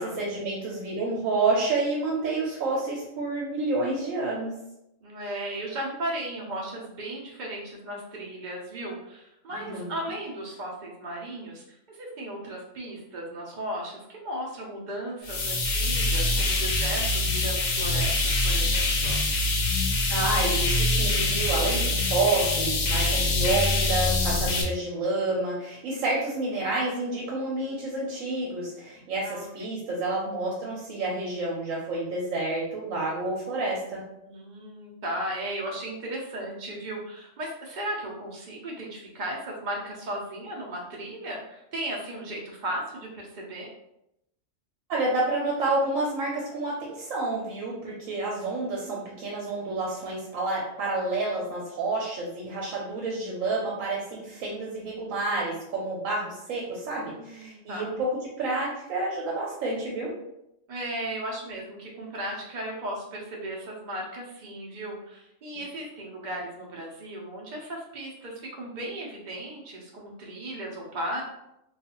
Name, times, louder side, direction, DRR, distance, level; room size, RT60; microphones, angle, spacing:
voice 1, 0.0-4.5 9.6-9.9 20.1-34.0 44.9-60.1, right 2 dB, 85° right, -4 dB, 1.0 m, -29 dB
voice 2, 5.0-19.2 29.2-29.7 34.3-43.7 57.0-57.9 60.7-71.2, right 1 dB, 50° right, -2 dB, 0.6 m, -36 dB
sound 1, 15.2-24.6, left 2 dB, 65° left, 0.7 m, -24 dB
2.4 x 2.3 x 2.8 m, 0.85 s
omnidirectional pair, 1.4 m